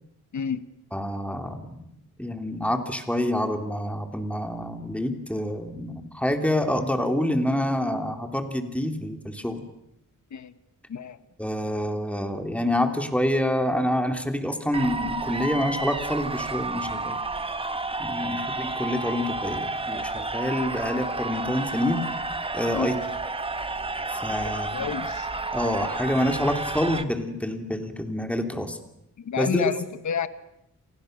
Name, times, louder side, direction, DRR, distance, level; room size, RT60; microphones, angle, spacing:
voice 1, 0.9-1.8 2.2-9.6 11.4-17.2 18.0-22.0 22.5-22.9 24.1-25.0 25.5-28.8 29.4-29.7, left 1 dB, 5° left, 5 dB, 3.0 m, -27 dB
sound 1, 14.7-27.0, right 3 dB, 15° right, 1.2 m, -31 dB
voice 2, 24.4-25.3 29.2-30.3, left 7 dB, 65° left, 12 dB, 1.6 m, -30 dB
30.0 x 26.0 x 6.7 m, 0.81 s
wide cardioid pair, 135°, 32 cm